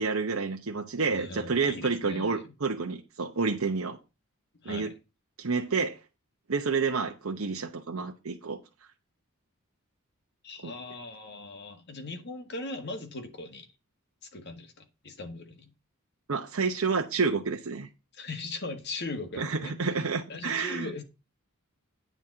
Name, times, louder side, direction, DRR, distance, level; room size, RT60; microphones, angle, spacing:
voice 1, 0.0-4.0 4.6-4.9 5.4-6.0 6.5-8.6 10.6-10.7 16.3-17.9 19.4-21.0, right 4 dB, 70° right, 0.9 m, -29 dB
voice 2, 1.1-2.3 4.6-4.9 10.4-13.7 14.3-15.7 18.1-19.8 20.3-21.0, left 2 dB, 50° left, 1.7 m, -39 dB
9.1 x 4.1 x 7.2 m
head